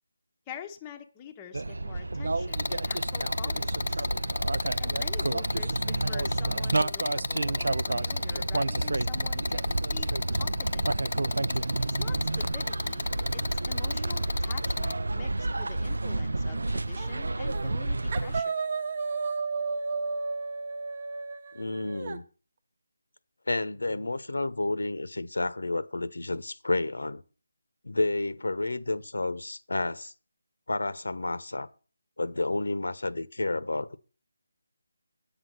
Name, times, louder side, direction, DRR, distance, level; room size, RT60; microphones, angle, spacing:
voice 1, 0.5-4.1 4.8-9.6 9.9-10.1 10.4-10.9 11.9-18.6, left 8 dB, 15° left, 0.8 m, -46 dB
sound 1, 1.5-18.4, right 2 dB, 75° right, 0.5 m, -30 dB
sound 2, 2.5-14.9, left 4 dB, 55° left, 0.5 m, -33 dB
sound 3, 17.0-17.2 17.5-17.8 18.1-22.2, right 4 dB, 35° right, 0.9 m, -33 dB
voice 2, 21.5-22.2 23.5-27.2 27.8-30.1 30.7-31.7 32.2-34.0, left 2 dB, 90° left, 1.1 m, -30 dB
9.0 x 6.1 x 7.9 m
figure-of-eight pair, 170°, 0 cm